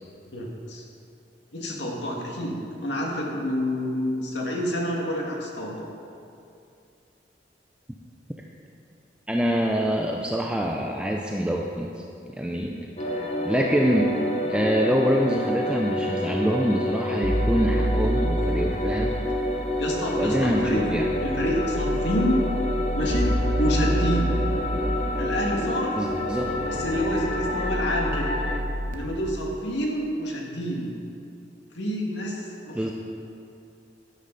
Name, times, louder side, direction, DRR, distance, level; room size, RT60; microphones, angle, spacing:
voice 1, 0.3-0.8 1.5-5.9 19.8-20.8 21.2-22.4 22.9-24.3 25.2-25.9 26.6-28.3 28.9-30.9 31.7-32.9, equal, 80° left, -2 dB, 2.1 m, -28 dB
voice 2, 9.3-12.0 12.4-12.9 13.5-14.2 14.5-19.2 20.1-21.1 26.0-26.6 32.7-32.9, equal, 5° right, 0 dB, 0.5 m, -25 dB
sound 1, 13.0-28.6, left 1 dB, 35° left, 0.9 m, -29 dB
sound 2, 17.2-28.9, equal, 50° right, 1.1 m, -29 dB
sound 3, 20.3-27.0, right 1 dB, 90° right, 1.9 m, -39 dB
11.5 x 11.0 x 4.0 m, 2.5 s
head